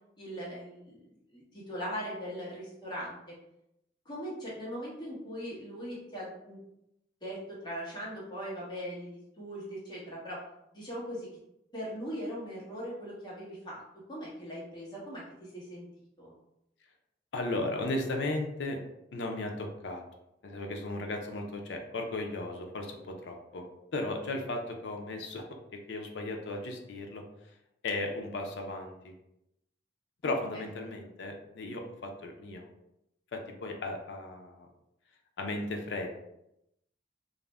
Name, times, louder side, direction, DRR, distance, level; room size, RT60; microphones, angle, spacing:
voice 1, 0.2-3.3 4.0-6.6 7.2-10.4 10.7-11.3 11.7-13.8 14.1-15.9 16.2-16.3 30.2-30.6, equal, 25° left, -7 dB, 1.0 m, -40 dB
voice 2, 17.3-18.8 19.1-20.0 20.4-23.6 23.9-25.4 25.9-27.2 27.8-29.1 30.2-32.7 33.3-34.7 35.4-36.1, left 2 dB, 75° left, 3 dB, 0.4 m, -35 dB
2.4 x 2.0 x 3.3 m, 0.83 s
head